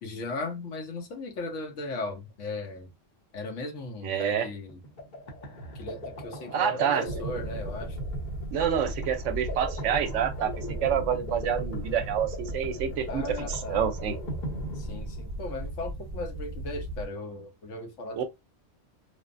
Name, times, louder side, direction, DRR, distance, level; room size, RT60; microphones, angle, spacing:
voice 1, 0.0-2.9 3.3-4.8 5.7-8.0 13.1-13.9 14.7-18.2, left 2 dB, 75° left, 1.1 m, -37 dB
voice 2, 4.0-4.5 6.5-7.0 8.5-14.2 18.2-18.3, right 8 dB, 75° right, 0.9 m, -28 dB
sound 1, 4.7-15.5, equal, 45° left, 0.8 m, -39 dB
sound 2, 7.1-17.1, right 1 dB, 15° right, 0.9 m, -37 dB
3.3 x 2.0 x 2.4 m
omnidirectional pair, 1.3 m